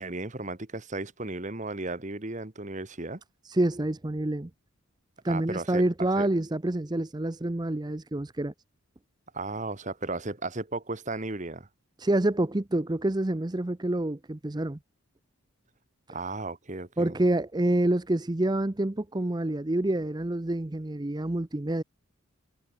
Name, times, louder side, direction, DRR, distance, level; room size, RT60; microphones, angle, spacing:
voice 1, 0.0-3.2 5.3-5.8 6.2-6.3 9.3-11.7 16.1-17.2, right 2 dB, 35° right, 1.6 m, -35 dB
voice 2, 3.4-4.5 5.2-8.5 12.0-14.8 17.0-21.8, right 1 dB, 20° right, 0.6 m, -27 dB
head